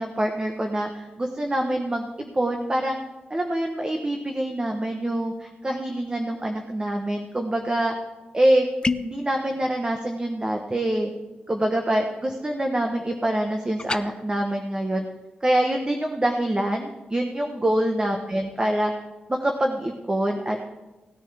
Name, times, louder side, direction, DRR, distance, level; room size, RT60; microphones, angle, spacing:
voice 1, 0.0-2.1 2.3-3.0 3.3-7.9 8.3-8.7 9.0-11.1 11.5-15.0 15.4-18.9 19.3-20.6, right 1 dB, 25° right, 3 dB, 1.0 m, -25 dB
sound 1, 8.8-9.2 13.8-14.0, left 3 dB, 25° left, 0.5 m, -26 dB
18.0 x 9.8 x 3.5 m, 1.1 s
cardioid pair, 85°, 3 cm